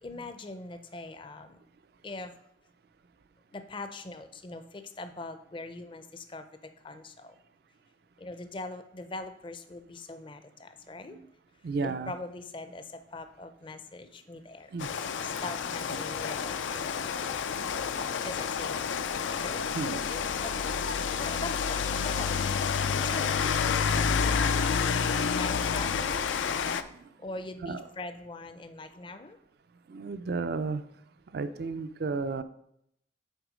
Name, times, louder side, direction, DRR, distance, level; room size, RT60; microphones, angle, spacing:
voice 1, 0.0-1.6 2.0-2.3 3.5-7.4 8.2-11.2 11.8-14.7 15.2-17.3 18.2-19.0 19.4-20.6 21.2-24.2 25.3-26.5 27.2-29.4, left 2 dB, 25° left, 9 dB, 0.5 m, -42 dB
voice 2, 11.6-12.1 14.7-14.9 15.9-16.1 19.7-20.3 25.8-26.0 27.6-27.8 29.9-30.8 31.3-32.4, right 4 dB, 55° right, 12 dB, 0.4 m, -33 dB
Rain, 14.8-26.8, left 6 dB, 90° left, 0.4 m, -29 dB
8.0 x 4.3 x 4.9 m, 0.75 s
head